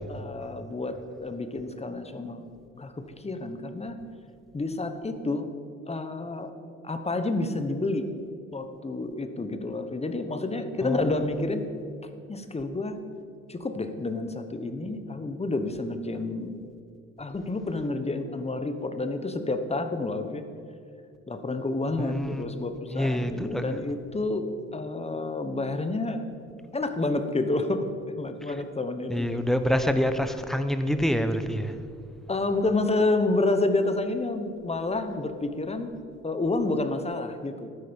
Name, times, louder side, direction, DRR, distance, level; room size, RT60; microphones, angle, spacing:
voice 1, 0.1-2.5 2.7-4.0 4.5-5.5 5.9-6.5 6.8-8.0 8.5-11.6 12.3-13.0 13.5-16.6 17.2-20.4 21.3-24.5 24.7-26.2 26.7-27.9 28.2-29.3 32.3-35.9 36.2-37.7, left 2 dB, 20° left, 8 dB, 1.1 m, -29 dB
voice 2, 10.8-11.5 22.0-22.5 22.9-23.8 28.5-28.6 29.1-31.8, equal, ahead, 9 dB, 0.8 m, -27 dB
12.5 x 9.6 x 5.3 m, 2.3 s
cardioid pair, 90°, 30 cm